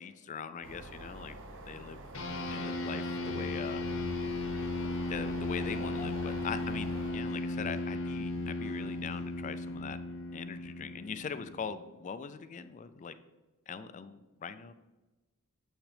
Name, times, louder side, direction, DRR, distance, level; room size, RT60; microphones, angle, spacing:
voice 1, 0.0-1.4 1.7-2.0 2.5-3.8 5.1-10.0 10.3-13.2 13.7-14.7, left 6 dB, 35° left, 12 dB, 0.3 m, -41 dB
sound 1, 0.6-7.1, right 2 dB, 60° right, 0.9 m, -47 dB
sound 2, 2.1-11.9, left 2 dB, 65° left, 0.9 m, -36 dB
Laughter / Crowd, 4.0-9.8, equal, 45° right, 1.6 m, -52 dB
7.4 x 6.0 x 3.3 m, 1.1 s
head